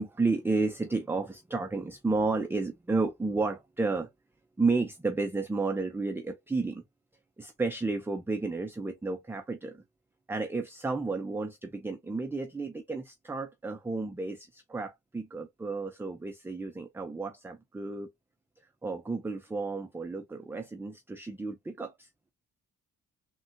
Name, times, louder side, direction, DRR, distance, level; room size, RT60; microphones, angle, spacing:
voice 1, 0.0-4.1 4.6-6.8 7.4-9.8 10.3-18.1 18.8-22.1, right 3 dB, 5° right, 0.4 m, -32 dB
3.5 x 2.2 x 2.5 m
cardioid pair, 90°, 30 cm